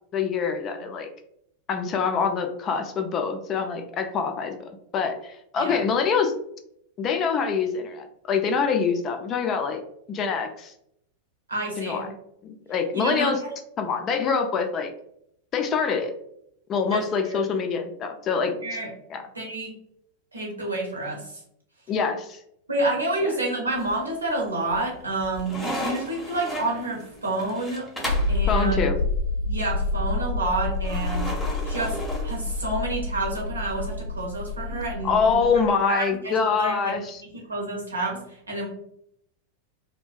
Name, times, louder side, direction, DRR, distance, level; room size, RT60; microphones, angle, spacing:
voice 1, 0.1-1.1 1.7-6.3 7.0-9.8 10.1-10.7 11.8-12.1 12.4-13.4 13.8-14.9 15.5-16.1 16.7-18.5 19.1-19.2 21.9-22.4 28.5-29.0 35.0-37.2, left 5 dB, 30° left, 5 dB, 0.3 m, -25 dB
voice 2, 11.5-12.1 12.9-13.5 16.9-17.4 18.6-18.9 19.3-19.7 20.3-21.4 22.7-27.9 28.3-28.8 29.4-31.3 31.6-32.0 32.2-35.4 35.9-36.9 37.3-38.7, right 2 dB, 75° right, -1 dB, 0.7 m, -29 dB
sound 1, 23.7-24.3 24.7-28.4 30.8-32.9, equal, 5° left, 0.7 m, -34 dB
sound 2, 28.0-35.5, left 2 dB, 85° left, 0.7 m, -28 dB
2.6 x 2.1 x 2.3 m, 0.73 s
figure-of-eight pair, 90°, 0 cm